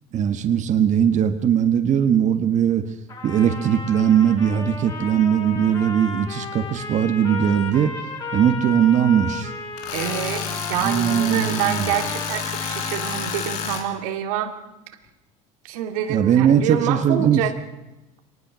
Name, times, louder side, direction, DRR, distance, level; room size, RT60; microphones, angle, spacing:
voice 1, 0.1-2.8 3.2-7.9 8.3-9.5 10.8-11.9 16.1-17.4, right 9 dB, 45° right, 7 dB, 1.6 m, -19 dB
Trumpet, 3.1-13.5, left 4 dB, 25° left, 6.8 m, -34 dB
Tools, 9.8-13.8, left 7 dB, 85° left, 3.4 m, -29 dB
voice 2, 9.9-14.6 15.6-17.5, right 10 dB, 90° right, 5 dB, 2.5 m, -27 dB
23.5 x 19.5 x 6.4 m, 1.0 s
supercardioid pair, 110°, 18 cm